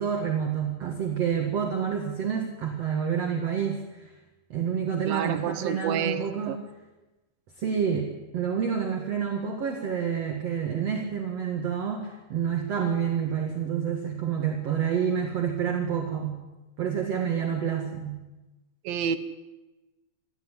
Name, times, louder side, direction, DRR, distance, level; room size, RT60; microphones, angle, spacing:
voice 1, 0.0-4.1 4.5-6.6 7.6-16.4 16.8-18.2, right 7 dB, 50° right, 2 dB, 2.5 m, -28 dB
voice 2, 5.1-6.6 18.8-19.2, right 8 dB, 75° right, 9 dB, 2.6 m, -29 dB
27.0 x 11.5 x 9.8 m, 1.1 s
omnidirectional pair, 4.4 m